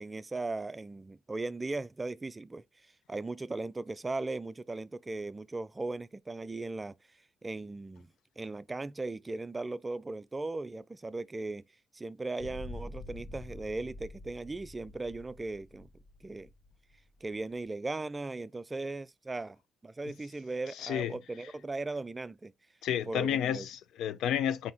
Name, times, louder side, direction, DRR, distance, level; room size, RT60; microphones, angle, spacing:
voice 1, 0.0-2.6 3.1-6.9 7.4-8.1 8.4-11.6 11.9-15.9 16.2-16.5 17.2-19.6 19.8-22.5 23.1-23.7, right 2 dB, 20° right, 0.4 m, -38 dB
sound 1, 12.4-17.6, left 2 dB, 55° left, 0.9 m, -47 dB
voice 2, 20.8-21.1 22.8-24.7, left 9 dB, 80° left, 0.5 m, -31 dB
4.1 x 2.8 x 3.4 m
cardioid pair, 90°, 0 cm